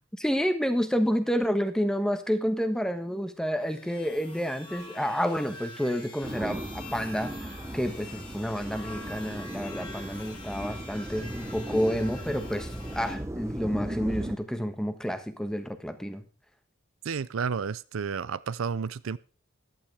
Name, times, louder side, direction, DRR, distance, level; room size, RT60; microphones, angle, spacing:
voice 1, 0.2-7.3 7.7-16.2, equal, 5° left, 9 dB, 1.2 m, -29 dB
sound 1, 3.6-13.2, left 2 dB, 25° left, 4.4 m, -45 dB
sound 2, 6.2-14.4, right 1 dB, 15° right, 0.7 m, -37 dB
voice 2, 17.0-19.2, right 6 dB, 70° right, 18 dB, 0.5 m, -31 dB
14.5 x 11.5 x 3.4 m, 0.37 s
head